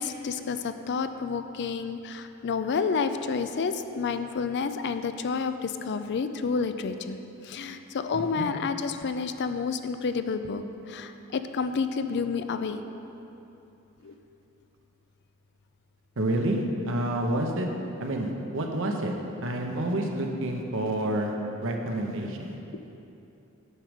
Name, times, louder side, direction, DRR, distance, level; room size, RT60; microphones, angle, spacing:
voice 1, 0.0-7.2 7.5-10.6 10.9-12.8 14.0-14.1, left 5 dB, 55° left, 9 dB, 0.4 m, -30 dB
voice 2, 8.1-8.5 16.2-17.7 18.0-19.1 19.4-21.3 21.6-22.5, right 1 dB, 65° right, 2 dB, 0.9 m, -28 dB
9.4 x 5.2 x 6.3 m, 2.9 s
head